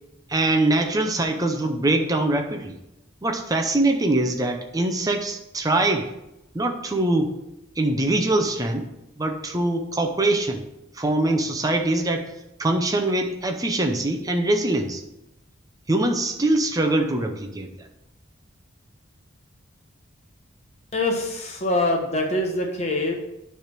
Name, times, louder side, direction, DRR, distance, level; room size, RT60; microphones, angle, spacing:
voice 1, 0.3-2.8 3.2-6.1 6.5-7.3 7.8-8.9 9.2-10.6 11.0-12.3 12.6-15.0 15.9-17.9, right 2 dB, 15° right, 4 dB, 0.7 m, -23 dB
voice 2, 20.9-23.1, left 2 dB, 30° left, 1 dB, 1.2 m, -24 dB
9.2 x 3.4 x 6.1 m, 0.90 s
head